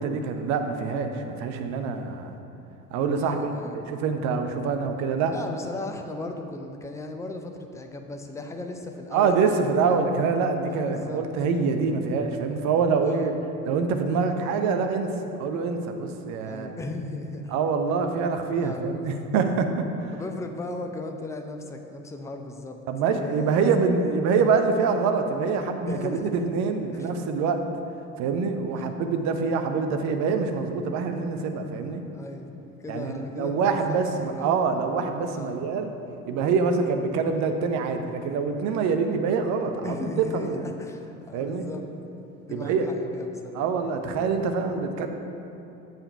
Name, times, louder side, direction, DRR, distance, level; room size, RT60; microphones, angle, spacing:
voice 1, 0.0-2.3 2.9-5.3 9.1-13.3 13.6-15.1 15.4-16.8 17.5-20.1 22.9-27.6 28.2-32.0 32.9-35.9 36.3-40.6 41.3-41.7 42.5-42.9 43.5-45.1, right 5 dB, 40° right, 6 dB, 0.8 m, -25 dB
voice 2, 3.2-3.8 5.3-10.1 10.7-11.2 13.0-13.4 16.4-17.6 18.6-19.3 20.1-22.8 23.1-23.7 25.9-26.3 26.9-27.1 28.7-29.0 32.1-32.5 32.8-34.7 35.3-35.6 39.8-41.9 42.5-43.7, left 2 dB, 5° left, 4 dB, 0.5 m, -37 dB
7.4 x 5.2 x 5.5 m, 2.9 s
figure-of-eight pair, 65°, 43 cm